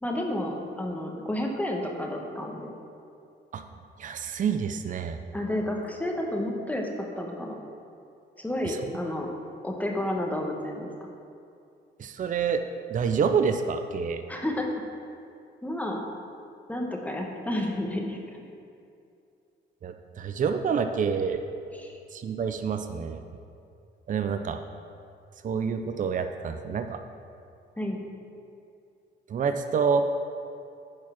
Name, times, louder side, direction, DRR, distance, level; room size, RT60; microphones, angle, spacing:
voice 1, 0.0-2.7 5.3-6.9 7.2-7.6 8.4-9.3 9.6-11.1 14.3-14.7 15.6-16.0 16.7-18.4 21.7-22.0 27.8-28.0, left 1 dB, 10° left, 1 dB, 1.2 m, -31 dB
voice 2, 4.0-5.2 8.7-8.8 12.0-12.6 12.9-14.2 19.8-21.4 22.1-23.2 24.1-24.6 25.4-27.0 29.3-30.0, right 6 dB, 40° right, 8 dB, 0.5 m, -27 dB
9.3 x 4.7 x 5.7 m, 2.5 s
cardioid pair, 90°, 20 cm